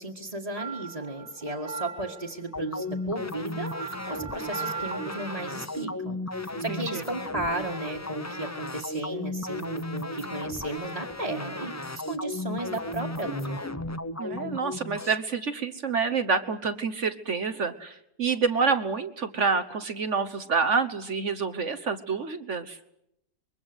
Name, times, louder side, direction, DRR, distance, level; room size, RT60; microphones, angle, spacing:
voice 1, 0.0-11.7 12.1-13.6, right 2 dB, 20° right, -2 dB, 1.9 m, -35 dB
sound 1, 0.5-5.9, right 5 dB, 85° right, 4.6 m, -39 dB
sound 2, 2.5-15.1, left 1 dB, 20° left, 0.5 m, -35 dB
voice 2, 6.7-7.0 14.2-22.8, right 5 dB, 45° right, 10 dB, 1.3 m, -28 dB
25.5 x 22.5 x 8.0 m, 0.81 s
omnidirectional pair, 1.8 m